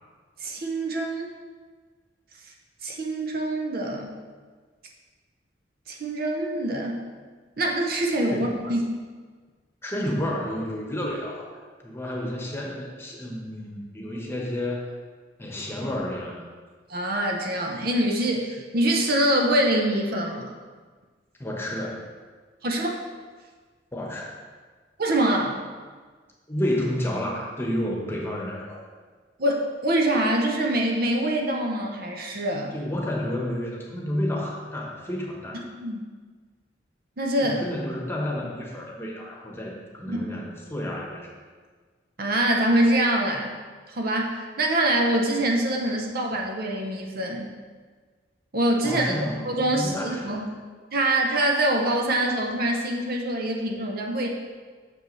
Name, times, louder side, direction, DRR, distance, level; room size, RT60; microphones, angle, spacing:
voice 1, 0.4-1.3 2.8-4.2 5.9-7.0 7.6-9.0 16.9-20.5 22.6-23.0 25.0-25.6 29.4-32.7 35.8-36.0 37.2-37.6 40.1-40.4 42.2-43.5 43.9-47.5 48.5-49.0 49.4-50.5 50.9-54.3, right 1 dB, 55° right, 1 dB, 0.8 m, -24 dB
voice 2, 9.8-14.9 15.4-16.4 21.4-22.1 23.9-24.3 26.5-28.8 32.7-35.6 37.4-41.4 48.8-50.4, left 1 dB, 15° left, -2 dB, 1.1 m, -30 dB
7.9 x 6.2 x 3.2 m, 1.5 s
head